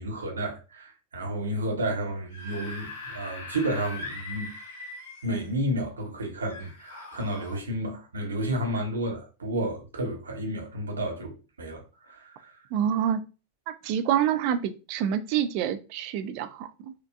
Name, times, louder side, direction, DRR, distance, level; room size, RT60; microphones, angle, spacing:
voice 1, 0.0-4.5 5.2-11.3 11.6-12.5, right 1 dB, 70° right, 0.9 m, -31 dB
Screaming / Screech, 2.1-5.5 6.5-7.6, left 2 dB, 55° left, 1.6 m, -41 dB
voice 2, 12.7-13.2 13.7-16.9, right 9 dB, 45° right, 0.3 m, -27 dB
4.5 x 2.3 x 2.4 m
figure-of-eight pair, 90°, 0 cm